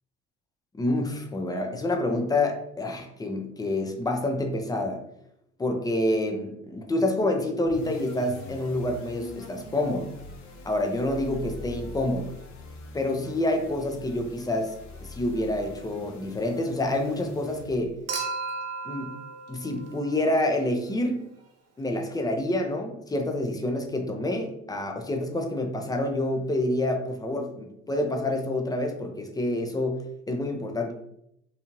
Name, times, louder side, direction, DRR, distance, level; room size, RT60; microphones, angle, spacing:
voice 1, 0.7-5.0 5.6-10.1 10.6-12.3 12.9-18.0 18.8-19.2 19.5-21.2 21.8-30.9, left 1 dB, 10° left, 4 dB, 0.4 m, -28 dB
sound 1, 7.6-18.0, left 3 dB, 50° left, 0.7 m, -43 dB
Human group actions / Chink clink / Liquid, 18.1-20.5 22.0-22.1, right 4 dB, 45° right, 0.7 m, -35 dB
2.6 x 2.4 x 2.9 m, 0.76 s
hypercardioid pair, 75°, 35 cm